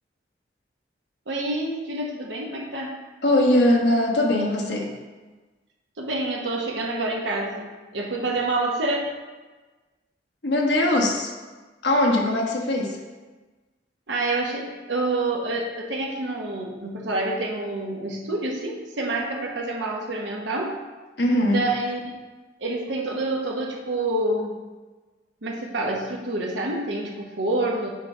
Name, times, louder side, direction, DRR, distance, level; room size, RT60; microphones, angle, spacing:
voice 1, 1.3-3.0 6.0-9.0 14.1-20.7 21.5-22.1 22.6-24.5 25.4-27.9, right 2 dB, 85° right, -1 dB, 1.0 m, -27 dB
voice 2, 3.2-4.9 10.4-11.3 11.8-13.0 21.2-21.6, left 1 dB, 65° left, 0 dB, 1.3 m, -21 dB
7.5 x 5.7 x 3.7 m, 1.3 s
head